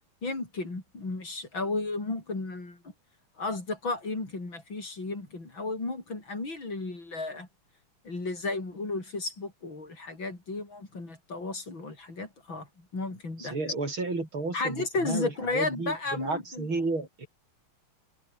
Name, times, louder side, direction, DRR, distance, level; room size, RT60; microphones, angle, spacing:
voice 1, 0.2-2.8 3.4-7.5 8.1-13.6 14.5-16.7, left 3 dB, 65° left, 6.9 m, -33 dB
voice 2, 13.4-17.3, right 3 dB, 75° right, 6.5 m, -32 dB
omnidirectional pair, 2.3 m